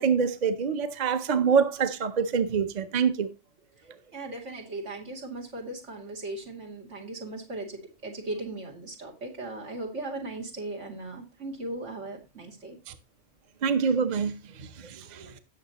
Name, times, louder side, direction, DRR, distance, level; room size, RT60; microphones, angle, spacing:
voice 1, 0.0-3.3 12.9-13.0 13.6-15.4, right 6 dB, 40° right, 0.8 m, -26 dB
voice 2, 4.1-12.8 15.0-15.1, right 2 dB, 85° right, 3.0 m, -38 dB
17.0 x 6.5 x 2.9 m
omnidirectional pair, 1.2 m